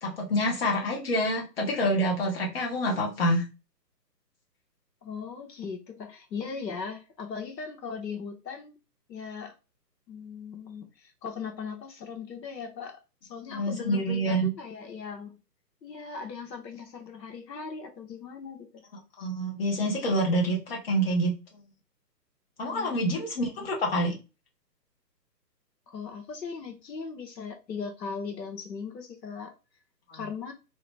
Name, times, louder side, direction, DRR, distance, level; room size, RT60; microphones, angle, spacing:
voice 1, 0.0-3.4 13.5-14.5 19.2-21.3 22.6-24.1 30.1-30.2, equal, 35° left, 1.1 m, -27 dB
voice 2, 5.0-8.7 9.1-9.5 10.1-13.0 13.3-15.4 15.8-18.7 22.7-23.2 25.9-29.5 30.1-30.5, left 5 dB, 75° left, 1.0 m, -38 dB
2.8 x 2.5 x 3.3 m
hypercardioid pair, 155°, 50 cm